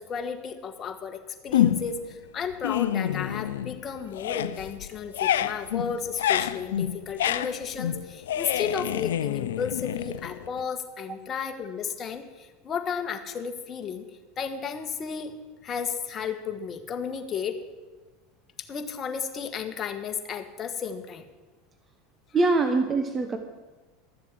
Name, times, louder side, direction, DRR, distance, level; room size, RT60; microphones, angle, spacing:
voice 1, 0.0-14.0 14.4-15.4 15.6-17.6 18.7-21.2, left 6 dB, 35° left, 6 dB, 1.5 m, -33 dB
sound 1, 1.5-2.1 2.5-3.8 4.1-10.6, left 11 dB, 80° left, 0.5 m, -28 dB
voice 2, 22.3-23.4, right 3 dB, 25° right, 7 dB, 1.0 m, -23 dB
13.0 x 7.3 x 7.7 m, 1.2 s
hypercardioid pair, 95°, 0 cm